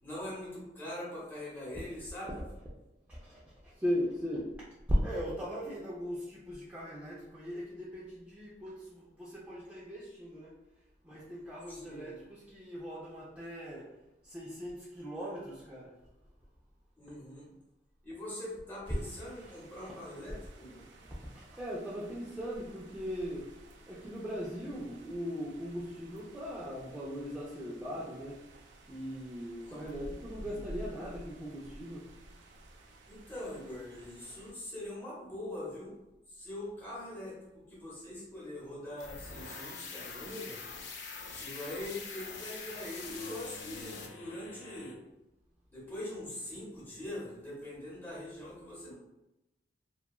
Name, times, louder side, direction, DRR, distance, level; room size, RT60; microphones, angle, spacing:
voice 1, 0.0-2.4 11.7-12.2 17.0-17.5 18.0-20.9 29.6-29.8 30.4-30.6 33.1-35.9 36.3-37.4 37.7-40.6 41.3-45.0 45.7-48.9, left 1 dB, 10° left, -7 dB, 0.9 m, -43 dB
voice 2, 3.1-4.5 4.9-10.5 11.0-13.9 14.2-15.9 19.8-19.9 21.3-23.5 23.9-28.4 28.9-32.1, equal, 10° right, -7 dB, 0.3 m, -38 dB
sound 1, 18.8-34.5, right 1 dB, 80° right, 0.4 m, -52 dB
sound 2, 39.0-44.9, left 4 dB, 90° left, 0.4 m, -44 dB
2.8 x 2.3 x 2.3 m, 0.96 s
head